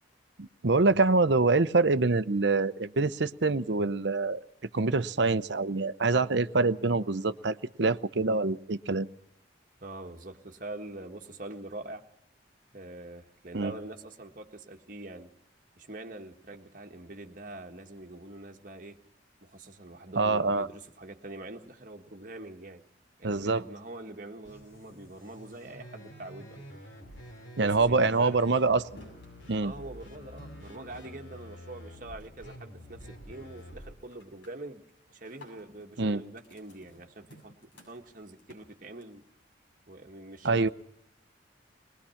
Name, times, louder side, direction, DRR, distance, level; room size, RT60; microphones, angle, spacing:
voice 1, 0.4-4.4 4.7-9.1 13.5-13.7 20.2-20.7 23.2-23.6 27.6-28.9 29.5-29.7 36.0-36.2 40.4-40.7, right 3 dB, 65° right, 14 dB, 0.7 m, -25 dB
voice 2, 9.8-12.0 12.7-15.3 15.8-19.0 19.4-22.8 23.2-26.8 27.2-28.4 29.6-34.8 35.1-39.2 39.9-40.7, right 2 dB, 45° right, 3 dB, 1.7 m, -44 dB
sound 1, 24.4-33.9, equal, 85° left, 4.1 m, -48 dB
sound 2, 29.0-32.2 32.5-32.9 33.2-33.7 34.0-39.3, equal, 70° left, 7.0 m, -57 dB
21.5 x 20.5 x 5.8 m, 0.74 s
head